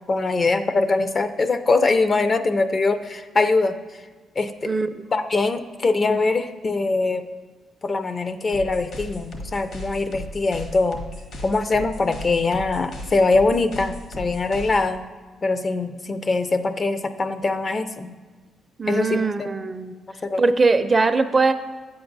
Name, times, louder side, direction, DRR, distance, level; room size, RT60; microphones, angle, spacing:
voice 1, 0.1-3.8 4.4-4.7 5.1-7.3 7.8-11.0 11.4-15.0 15.4-18.1 18.9-19.5 20.2-20.4, left 3 dB, 35° left, 10 dB, 0.4 m, -22 dB
sound 1, 8.5-14.9, left 1 dB, 70° left, 1.3 m, -37 dB
voice 2, 18.8-19.9 20.4-21.5, right 3 dB, 30° right, 9 dB, 0.4 m, -20 dB
8.8 x 6.9 x 2.6 m, 1.4 s
cardioid pair, 90°, 0 cm